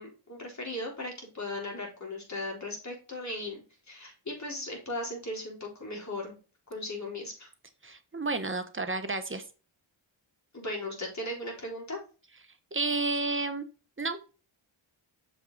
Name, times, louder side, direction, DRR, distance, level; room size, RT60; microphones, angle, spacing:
voice 1, 0.0-3.6 3.9-6.4 6.7-7.5 10.5-12.0, left 1 dB, 35° left, -1 dB, 3.9 m, -37 dB
voice 2, 7.8-9.4 12.7-13.6 14.0-14.2, right 3 dB, 25° right, 8 dB, 1.1 m, -31 dB
6.6 x 5.4 x 4.0 m, 0.34 s
wide cardioid pair, 80°, 48 cm